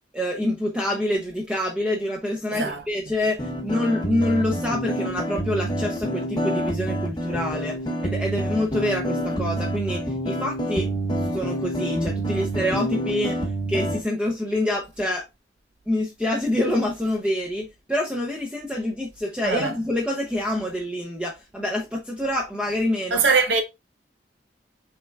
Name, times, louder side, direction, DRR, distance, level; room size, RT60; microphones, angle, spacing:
voice 1, 0.1-7.8 8.0-10.9 11.3-13.4 13.7-15.3 15.9-23.2, left 1 dB, 5° right, 0.7 m, -26 dB
voice 2, 2.5-2.8 19.4-19.7 23.1-23.6, right 4 dB, 85° right, 0.8 m, -21 dB
sound 1, 3.4-14.0, right 1 dB, 25° left, 0.9 m, -27 dB
5.7 x 3.4 x 2.3 m
head